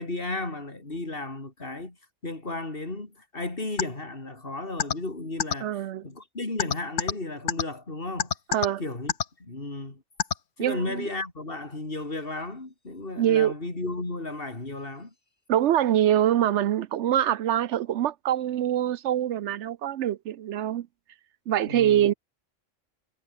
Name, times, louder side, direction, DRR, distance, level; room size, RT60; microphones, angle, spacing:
voice 1, 0.0-2.0 2.2-8.3 8.8-9.1 9.4-10.0 10.6-15.1 21.7-22.1, left 2 dB, 45° left, 4.1 m, -34 dB
sound 1, 3.8-3.9 4.8-4.9 5.4-5.5 6.6-7.1 7.5-7.6 8.2-8.7 9.1-9.3 10.2-10.3, left 7 dB, 75° left, 1.6 m, -24 dB
voice 2, 5.6-6.1 8.5-8.8 10.6-11.1 13.2-13.5 15.5-20.9 21.5-22.1, right 11 dB, 70° right, 0.9 m, -24 dB
omnidirectional pair, 1.3 m